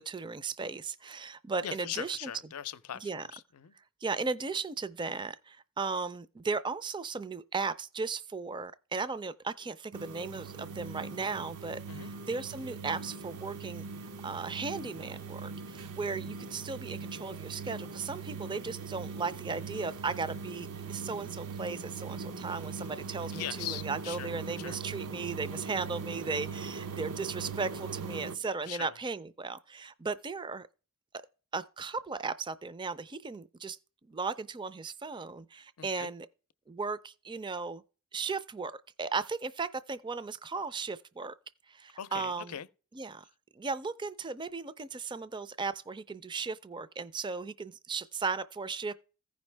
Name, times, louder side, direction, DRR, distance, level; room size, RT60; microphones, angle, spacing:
voice 1, 0.0-2.3 3.0-3.2 4.0-30.7 31.5-33.8 34.1-36.3 36.7-37.8 38.1-38.7 39.0-41.3 41.7-42.5 43.0-43.2 43.6-48.9, right 4 dB, 20° right, 0.4 m, -36 dB
voice 2, 1.6-3.7 11.9-12.1 23.3-24.8 28.6-29.0 35.8-36.1 42.0-42.7, left 10 dB, 90° left, 0.5 m, -41 dB
sound 1, 9.9-28.4, right 5 dB, 90° right, 0.8 m, -41 dB
15.0 x 5.3 x 3.3 m
head